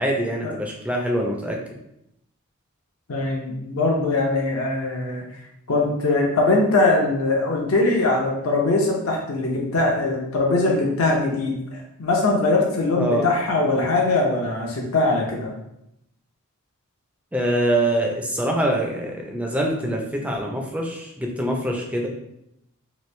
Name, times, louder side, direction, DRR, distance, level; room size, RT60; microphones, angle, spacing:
voice 1, 0.0-1.6 13.0-13.3 17.3-22.1, right 1 dB, 5° right, 0 dB, 0.4 m, -24 dB
voice 2, 3.1-5.2 5.7-15.5, left 2 dB, 65° left, -1 dB, 0.6 m, -21 dB
3.0 x 2.6 x 3.1 m, 0.81 s
head